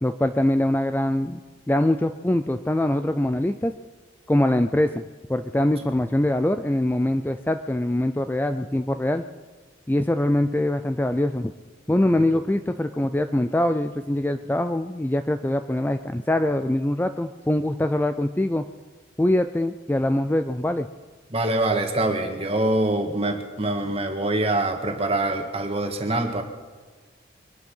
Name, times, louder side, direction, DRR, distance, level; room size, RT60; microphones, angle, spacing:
voice 1, 0.0-1.4 1.7-3.7 4.3-5.0 5.3-9.2 9.9-11.5 11.9-18.7 19.2-20.9, left 1 dB, 10° left, 9 dB, 0.4 m, -23 dB
voice 2, 21.3-26.4, right 2 dB, 30° right, 4 dB, 1.8 m, -24 dB
23.0 x 10.5 x 5.6 m, 1.5 s
head